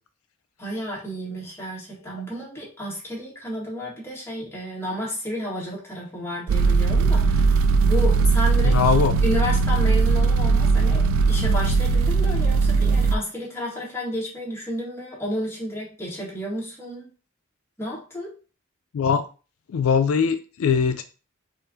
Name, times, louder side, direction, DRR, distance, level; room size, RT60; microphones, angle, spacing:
voice 1, 0.6-8.9 9.2-17.1 17.8-18.4, left 1 dB, 10° left, -5 dB, 1.8 m, -31 dB
sound 1, 6.5-13.2, right 4 dB, 70° right, 0.4 m, -19 dB
voice 2, 8.6-9.1 18.9-19.2 19.7-21.0, left 6 dB, 75° left, 9 dB, 0.4 m, -21 dB
4.4 x 2.4 x 3.8 m, 0.35 s
head